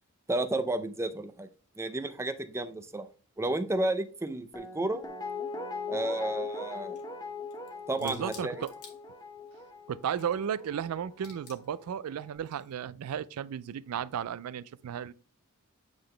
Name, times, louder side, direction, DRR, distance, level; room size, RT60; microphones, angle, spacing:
voice 1, 0.3-1.5 1.8-3.1 3.4-5.0 5.9-7.0 7.9-8.6, right 2 dB, 10° right, 0.5 m, -32 dB
Guitar, 4.5-11.6 11.9-12.0, left 4 dB, 15° left, 1.0 m, -40 dB
sound 1, 6.4-7.1 7.5-9.5 9.9-10.8 11.1-11.8 12.4-12.8, left 5 dB, 80° left, 2.0 m, -53 dB
voice 2, 8.0-8.7 9.9-15.1, right 8 dB, 70° right, 0.3 m, -34 dB
8.9 x 3.9 x 3.2 m
head